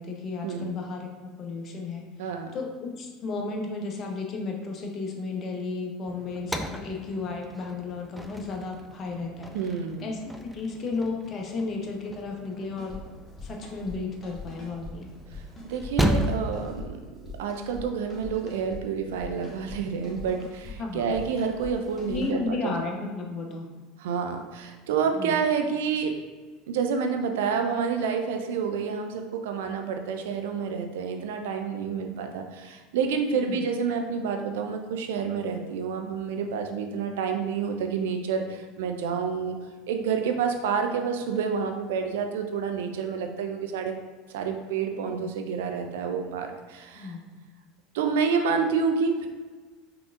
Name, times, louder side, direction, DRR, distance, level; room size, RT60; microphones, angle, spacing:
voice 1, 0.0-2.1 2.5-9.5 10.0-13.0 13.4-15.1 20.8-21.1 22.1-23.7 25.1-25.4 33.3-33.6 45.1-45.3 47.0-47.2, left 3 dB, 40° left, 1 dB, 0.9 m, -33 dB
voice 2, 2.2-2.6 9.5-10.0 15.3-17.0 17.4-22.7 24.0-26.2 26.7-39.6 39.9-43.9 44.3-47.1 47.9-49.3, right 6 dB, 65° right, 5 dB, 0.4 m, -29 dB
sound 1, 6.1-16.7, equal, ahead, 0.4 m, -34 dB
sound 2, 12.8-13.0 13.4-14.0 14.2-14.9 15.3-16.9 17.2-17.8 18.1-18.8 19.2-19.8 20.0-20.7 21.1-22.3, left 3 dB, 20° left, 1.5 m, -42 dB
5.7 x 3.5 x 2.4 m, 1.4 s
figure-of-eight pair, 75°, 0 cm